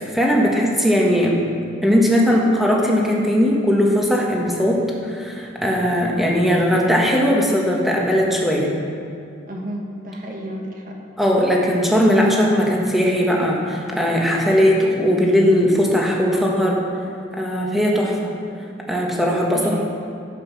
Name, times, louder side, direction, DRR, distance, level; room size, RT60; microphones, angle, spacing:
voice 1, 0.0-1.4 1.8-8.7 11.2-16.8 17.4-18.3 18.9-19.6, equal, ahead, -2 dB, 1.4 m, -18 dB
voice 2, 9.5-11.0 19.5-19.8, equal, 40° right, 0 dB, 1.4 m, -32 dB
11.5 x 8.1 x 6.1 m, 2.5 s
head